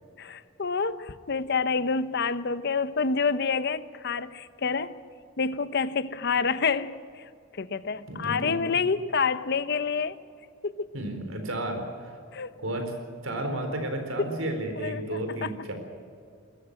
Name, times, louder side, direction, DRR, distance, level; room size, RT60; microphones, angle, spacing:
voice 1, 0.2-4.9 5.4-7.0 7.6-10.2 10.8-10.9 12.3-12.5 14.8-15.5, left 5 dB, 55° left, 0.8 m, -28 dB
voice 2, 8.1-8.6 10.9-12.1 12.6-12.9 13.2-15.7, right 1 dB, 85° right, 4.2 m, -32 dB
20.5 x 14.0 x 9.9 m
head